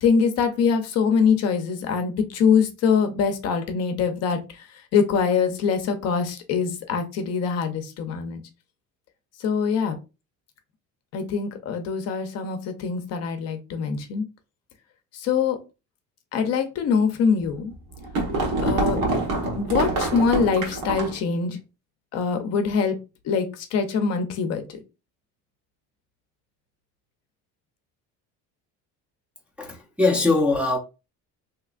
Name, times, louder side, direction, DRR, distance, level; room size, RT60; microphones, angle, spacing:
voice 1, 0.0-8.4 9.4-10.0 11.1-14.2 15.1-15.6 16.3-17.7 18.6-19.0 19.6-21.6 22.1-23.0 23.2-24.6, left 6 dB, 50° left, 0.6 m, -23 dB
sound 1, 17.5-21.2, right 2 dB, 75° right, 1.4 m, -25 dB
voice 2, 29.6-30.8, left 3 dB, 5° right, 0.5 m, -21 dB
3.3 x 2.9 x 2.4 m
cardioid pair, 155°, 32 cm